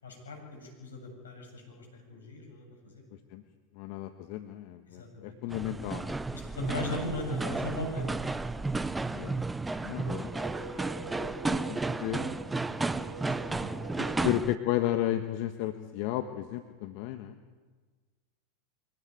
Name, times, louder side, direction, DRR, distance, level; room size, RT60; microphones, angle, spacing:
voice 1, 0.0-3.0 4.9-5.3 6.3-8.1 10.6-11.1 12.7-13.7, left 2 dB, 80° left, 2 dB, 7.7 m, -39 dB
voice 2, 3.8-6.2 9.1-9.3 9.8-10.3 11.2-12.2 14.0-17.4, left 14 dB, 55° left, 8 dB, 1.4 m, -33 dB
sound 1, 5.5-14.6, right 3 dB, 10° right, 0.8 m, -33 dB
sound 2, 9.9-14.5, right 4 dB, 30° right, 6.6 m, -44 dB
24.5 x 17.0 x 9.3 m, 1.4 s
hypercardioid pair, 90°, 0 cm